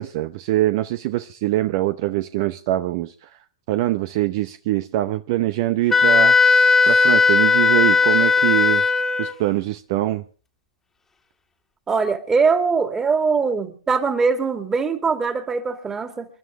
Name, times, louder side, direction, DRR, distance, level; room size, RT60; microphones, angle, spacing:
voice 1, 0.0-3.3 3.7-6.3 6.9-8.8 9.2-10.2, right 15 dB, 50° right, 0.7 m, -23 dB
Wind instrument woodwind instrument, 5.9-9.4, left 4 dB, 10° left, 1.8 m, -16 dB
voice 2, 11.9-16.3, right 5 dB, 15° right, 2.3 m, -21 dB
28.0 x 11.0 x 3.6 m
hypercardioid pair, 110°, 3 cm